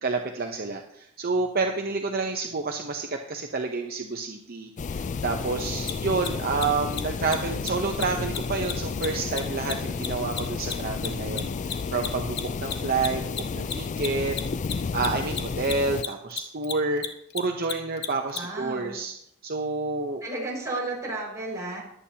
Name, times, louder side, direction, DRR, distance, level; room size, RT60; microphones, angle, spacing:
voice 1, 0.0-13.2 13.6-14.4 14.9-17.0 17.3-19.1 19.4-20.2, right 3 dB, 45° right, 3 dB, 0.8 m, -29 dB
sound 1, 4.8-16.0, left 5 dB, 35° left, 0.3 m, -32 dB
Mechanisms, 5.8-5.9 6.2-6.3 6.5-6.7 6.9-7.0 7.3-7.4 7.6-7.7 7.9-8.0 8.3-11.1 11.3-18.4, left 8 dB, 50° left, 1.0 m, -32 dB
voice 2, 18.3-18.9 20.2-21.8, right 2 dB, 15° right, -4 dB, 5.4 m, -33 dB
22.0 x 8.4 x 2.9 m, 0.75 s
head